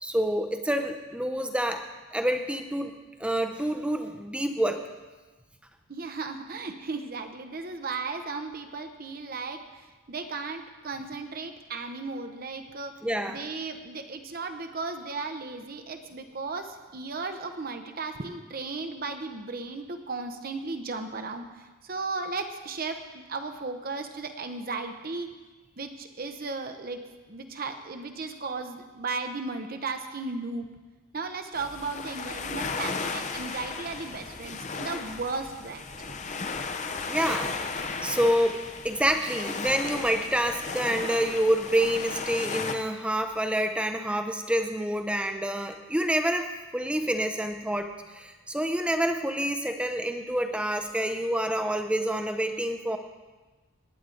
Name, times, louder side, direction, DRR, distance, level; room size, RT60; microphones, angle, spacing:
voice 1, 0.0-1.8 2.1-4.8 13.0-13.4 37.1-53.0, right 1 dB, 5° right, 6 dB, 0.6 m, -28 dB
voice 2, 5.9-9.6 10.1-12.9 13.3-21.5 21.8-25.3 25.8-27.0 27.3-30.7 31.1-36.2, right 3 dB, 40° right, 6 dB, 0.7 m, -35 dB
sound 1, 31.5-42.8, left 4 dB, 30° left, 0.7 m, -35 dB
18.5 x 9.8 x 3.8 m, 1.2 s
head